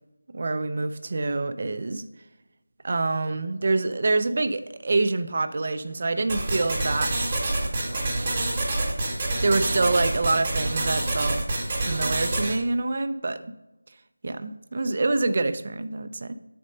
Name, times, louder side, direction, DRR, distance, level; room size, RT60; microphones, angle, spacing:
voice 1, 0.3-2.1 2.8-7.3 7.9-8.3 9.4-11.4 11.8-13.5 14.2-16.3, right 3 dB, 35° right, 10 dB, 0.4 m, -26 dB
sound 1, 6.3-12.6, right 2 dB, 20° right, 1.0 m, -27 dB
6.3 x 4.3 x 5.2 m, 0.98 s
figure-of-eight pair, 175°, 0 cm